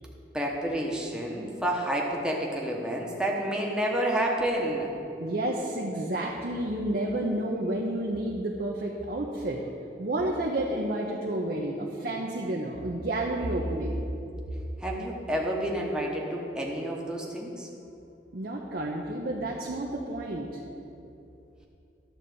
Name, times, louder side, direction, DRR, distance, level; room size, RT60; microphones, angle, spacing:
voice 1, 0.3-4.9 14.8-17.7, right 1 dB, 5° right, -2 dB, 1.0 m, -29 dB
voice 2, 5.2-9.6 10.0-14.0 18.3-20.5, right 1 dB, 55° right, -1 dB, 0.8 m, -30 dB
11.5 x 4.1 x 7.6 m, 2.7 s
head